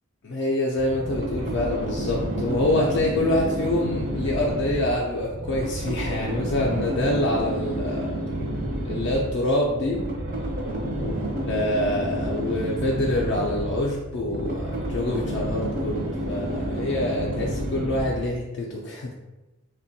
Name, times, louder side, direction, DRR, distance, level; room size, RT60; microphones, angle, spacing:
voice 1, 0.2-8.1 8.8-10.0 10.9-11.1 11.5-19.1, left 1 dB, 50° left, -3 dB, 0.3 m, -26 dB
sound 1, 0.8-18.4, right 1 dB, 35° right, 0.5 m, -30 dB
3.4 x 2.2 x 2.6 m, 1.1 s
head